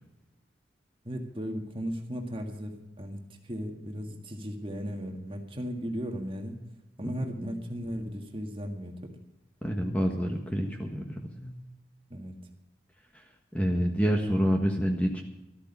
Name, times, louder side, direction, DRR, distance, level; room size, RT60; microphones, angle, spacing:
voice 1, 1.0-6.6 7.0-9.2 12.1-12.4, equal, 30° right, 3 dB, 1.9 m, -36 dB
voice 2, 9.6-11.6 13.1-15.2, equal, 10° left, 2 dB, 1.4 m, -28 dB
13.5 x 13.5 x 5.5 m, 0.99 s
head